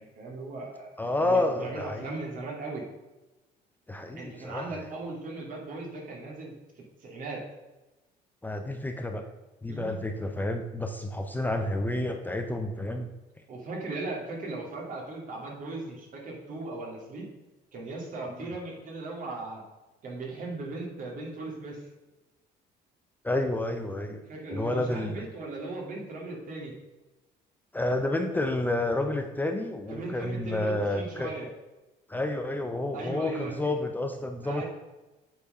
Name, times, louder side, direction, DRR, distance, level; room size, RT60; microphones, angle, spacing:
voice 1, 0.0-0.9 1.2-2.8 4.1-7.4 9.7-10.0 13.5-17.3 17.7-19.6 20.0-21.9 24.2-26.7 29.9-31.5 32.9-33.7 34.4-34.6, right 3 dB, 55° right, -1 dB, 2.7 m, -38 dB
voice 2, 1.0-2.1 3.9-4.9 8.4-9.2 9.6-13.1 23.2-24.2 24.5-25.1 27.7-31.3 32.1-34.6, left 1 dB, 10° left, 5 dB, 0.6 m, -30 dB
8.2 x 4.7 x 5.0 m, 1.1 s
cardioid pair, 110°, 17 cm